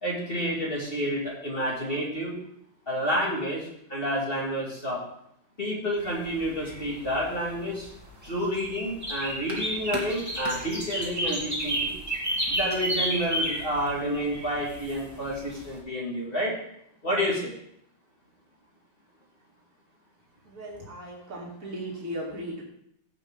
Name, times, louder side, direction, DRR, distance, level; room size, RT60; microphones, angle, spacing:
voice 1, 0.0-2.4 2.9-5.0 5.6-7.9 8.3-11.9 12.5-16.5 17.0-17.5, equal, 30° left, -3 dB, 2.1 m, -29 dB
sound 1, 6.0-15.8, right 1 dB, 10° right, 2.3 m, -32 dB
voice 2, 20.4-22.6, right 1 dB, 40° right, -4 dB, 2.8 m, -37 dB
16.0 x 5.7 x 3.6 m, 0.74 s
omnidirectional pair, 2.1 m